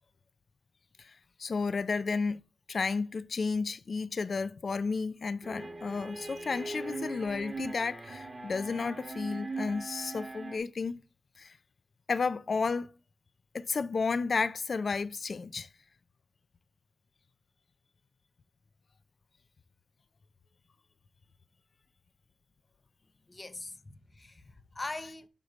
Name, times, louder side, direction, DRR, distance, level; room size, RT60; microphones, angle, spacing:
voice 1, 1.0-2.4 2.7-11.0 11.4-11.6 12.1-12.9 13.5-15.7, left 4 dB, 60° left, 0.4 m, -32 dB
sound 1, 5.4-10.6, right 3 dB, 35° right, 1.8 m, -40 dB
voice 2, 23.3-25.3, left 2 dB, 30° left, 0.8 m, -42 dB
8.8 x 3.2 x 5.3 m
wide cardioid pair, 115°, 0 cm